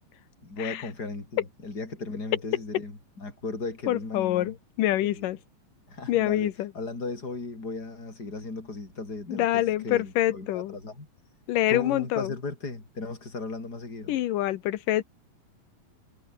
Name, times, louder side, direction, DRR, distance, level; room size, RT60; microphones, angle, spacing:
voice 1, 0.4-4.5 5.0-5.3 5.9-11.1 11.7-14.2, left 3 dB, 30° left, 6.3 m, -36 dB
voice 2, 3.9-5.4 6.1-6.7 9.3-10.8 11.5-12.3 14.1-15.0, left 14 dB, 85° left, 2.8 m, -26 dB
omnidirectional pair, 3.7 m